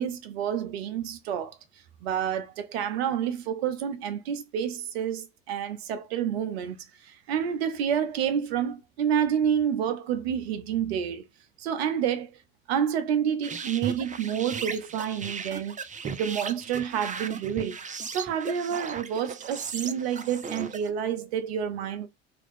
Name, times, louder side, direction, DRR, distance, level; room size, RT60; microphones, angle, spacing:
voice 1, 0.0-1.6 2.0-6.8 7.0-11.2 11.6-12.4 12.7-15.8 16.0-17.8 18.1-22.1, right 8 dB, 85° right, 0.5 m, -29 dB
sound 1, 13.4-20.9, right 5 dB, 25° right, 0.5 m, -37 dB
2.9 x 2.4 x 3.4 m
hypercardioid pair, 60°, 31 cm